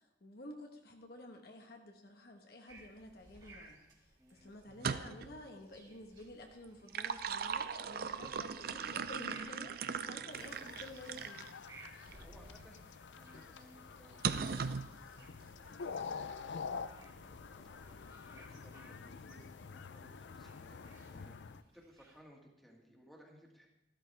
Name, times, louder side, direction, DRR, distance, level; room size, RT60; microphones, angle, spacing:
voice 1, 0.0-3.8 4.3-11.5, left 1 dB, 60° left, 3 dB, 1.3 m, -51 dB
sound 1, 2.7-22.2, right 2 dB, 25° right, 2.2 m, -61 dB
voice 2, 4.2-4.6 10.1-10.5 11.8-14.7 15.0-16.1 16.6-17.4 18.2-21.4 21.7-23.7, equal, ahead, -1 dB, 2.0 m, -62 dB
sound 2, 4.7-5.4 6.6-11.5 12.1-12.2 14.2-14.9, right 6 dB, 55° right, 0.5 m, -38 dB
sound 3, 10.3-21.6, left 5 dB, 90° left, 0.5 m, -47 dB
13.5 x 12.5 x 3.4 m, 0.89 s
head